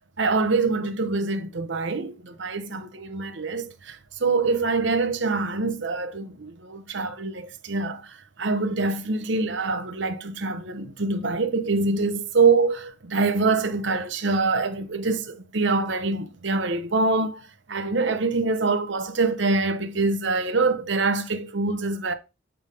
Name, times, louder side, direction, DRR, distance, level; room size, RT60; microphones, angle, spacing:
voice 1, 0.2-4.0 4.2-8.0 8.4-17.4 17.7-22.1, right 3 dB, 70° right, 0.9 m, -25 dB
8.9 x 3.5 x 5.2 m
head